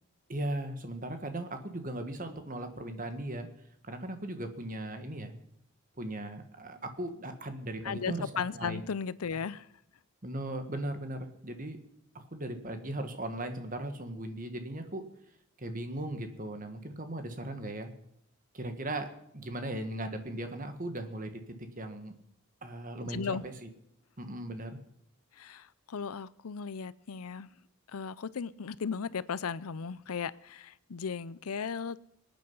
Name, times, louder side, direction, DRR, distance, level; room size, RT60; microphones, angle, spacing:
voice 1, 0.3-3.5 3.8-5.3 6.0-8.8 9.3-9.4 10.2-11.8 12.1-15.0 15.6-17.9 18.5-19.1 19.3-21.4 21.8-22.1 22.6-23.7 24.2-24.8, right 1 dB, 40° right, 1.7 m, -38 dB
voice 2, 7.8-9.7 23.0-23.4 25.4-27.5 27.9-32.0, left 6 dB, 85° left, 0.6 m, -36 dB
24.0 x 9.2 x 5.6 m
head